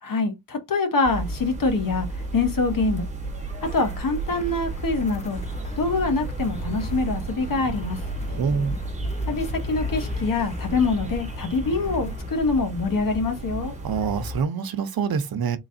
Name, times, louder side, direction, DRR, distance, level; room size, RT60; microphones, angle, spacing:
voice 1, 0.0-3.1 3.6-5.4 5.8-8.0 9.3-13.7, left 3 dB, 65° left, 1.1 m, -25 dB
sound 1, 1.0-14.4, right 2 dB, 20° right, 1.1 m, -33 dB
sound 2, 3.6-12.3, left 2 dB, 20° left, 0.5 m, -38 dB
voice 2, 8.3-8.7 13.8-15.6, right 6 dB, 75° right, 0.7 m, -26 dB
3.9 x 3.1 x 2.6 m
wide cardioid pair, 130°, 36 cm